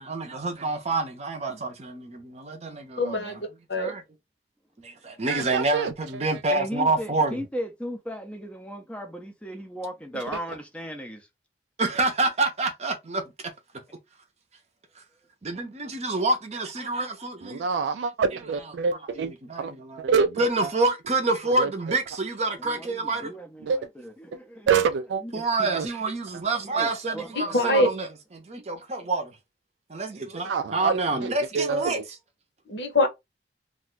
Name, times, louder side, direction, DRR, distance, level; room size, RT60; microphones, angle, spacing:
voice 1, 0.0-3.4 3.8-4.0 4.8-7.4 11.8-13.2 15.4-17.6 19.5-20.1 20.4-23.3 25.3-28.1 28.3-29.3 29.9-32.0, right 2 dB, 40° right, 0.6 m, -27 dB
voice 2, 3.0-3.9 27.3-27.9 32.7-33.1, left 1 dB, 75° left, 1.0 m, -24 dB
voice 3, 5.3-6.3 17.4-19.7 20.0-20.7 21.4-22.0 23.6-23.8 24.3-24.4 24.7-25.2 25.7-25.9 27.7-27.8 30.4-31.3 31.5-32.0, right 6 dB, 90° right, 0.3 m, -27 dB
voice 4, 6.5-11.3 13.9-14.0 22.6-24.7 25.2-25.7 26.8-27.9, equal, 5° left, 0.4 m, -37 dB
2.5 x 2.2 x 3.7 m
head